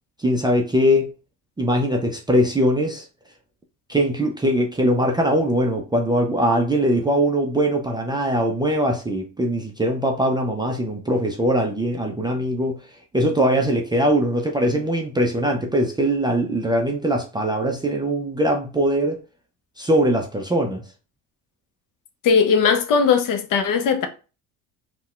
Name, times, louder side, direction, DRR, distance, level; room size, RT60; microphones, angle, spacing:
voice 1, 0.2-1.1 1.6-3.1 3.9-12.8 13.1-19.2 19.8-20.8, equal, 10° right, 0.4 m, -21 dB
voice 2, 22.2-24.1, left 6 dB, 50° left, 0.6 m, -18 dB
4.0 x 2.2 x 2.3 m
supercardioid pair, 80°, 42 cm